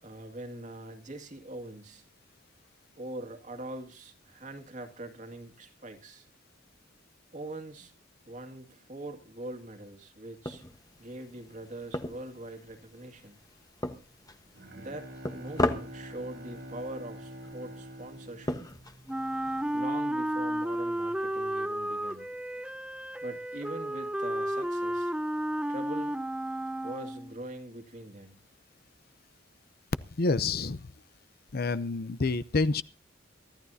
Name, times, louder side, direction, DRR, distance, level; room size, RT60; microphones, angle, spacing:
voice 1, 0.0-2.0 3.0-6.3 7.3-7.9 8.2-10.6 11.0-13.4 14.8-18.6 19.7-22.3 23.2-25.1 25.7-26.2 26.8-28.4, right 1 dB, 40° right, 2.2 m, -42 dB
sound 1, 10.4-19.8, left 1 dB, 20° left, 1.2 m, -38 dB
Bowed string instrument, 14.2-19.7, equal, 55° right, 3.3 m, -46 dB
Wind instrument woodwind instrument, 19.1-27.4, right 1 dB, 5° right, 0.8 m, -32 dB
voice 2, 30.2-30.8 31.5-32.8, left 3 dB, 50° left, 0.6 m, -28 dB
23.5 x 14.0 x 2.8 m
head